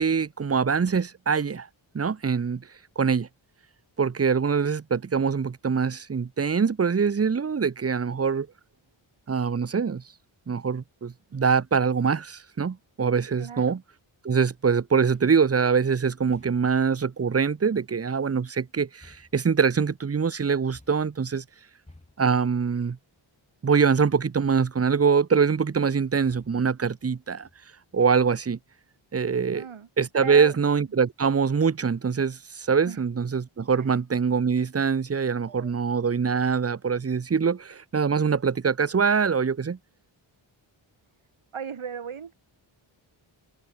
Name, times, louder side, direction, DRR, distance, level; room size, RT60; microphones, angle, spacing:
voice 1, 0.0-1.7 1.9-2.6 3.0-3.3 4.0-8.5 9.3-10.0 10.5-13.8 14.2-21.4 22.2-23.0 23.6-27.5 27.9-28.6 29.1-29.7 30.0-39.8, right 6 dB, 30° right, 0.8 m, -24 dB
voice 2, 13.4-13.8 29.5-29.9 30.2-30.5 32.9-33.0 33.8-33.9 35.5-35.7 41.5-42.3, right 7 dB, 80° right, 6.1 m, -37 dB
sound 1, 15.1-15.4 16.3-16.8 18.0-18.5 19.0-19.9 20.7-21.2 21.9-22.5 23.9-24.5 24.8-25.2 26.2-26.8 27.4-27.9, left 2 dB, 15° left, 4.9 m, -56 dB
wide cardioid pair, 155°, 48 cm